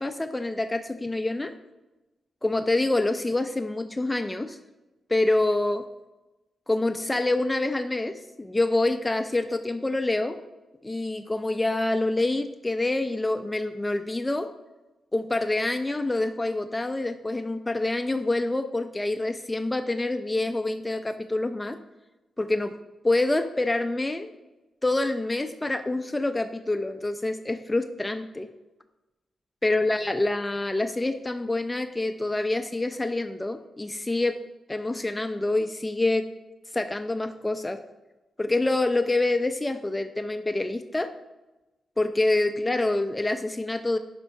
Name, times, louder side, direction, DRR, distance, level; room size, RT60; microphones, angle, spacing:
voice 1, 0.0-1.5 2.4-4.6 5.1-5.8 6.7-8.1 8.4-10.4 10.8-14.5 15.1-21.8 22.4-22.7 23.0-24.3 24.8-28.5 29.6-34.4 34.7-36.3 36.7-37.8 38.4-41.1 42.0-44.0, left 2 dB, 15° left, 8 dB, 0.3 m, -26 dB
9.4 x 5.3 x 2.6 m, 1.1 s
cardioid pair, 90°, 0 cm